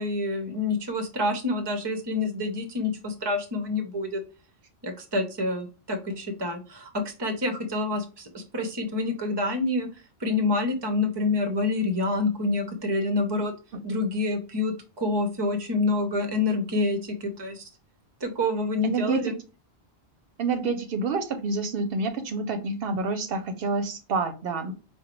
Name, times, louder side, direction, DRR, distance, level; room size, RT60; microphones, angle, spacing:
voice 1, 0.0-4.2 4.8-9.9 10.2-13.5 13.8-17.7 18.2-19.3, left 2 dB, 30° right, 7 dB, 0.6 m, -27 dB
voice 2, 18.8-19.3 20.4-24.7, right 4 dB, 70° right, 7 dB, 0.8 m, -28 dB
4.9 x 2.2 x 2.9 m, 0.34 s
omnidirectional pair, 1.0 m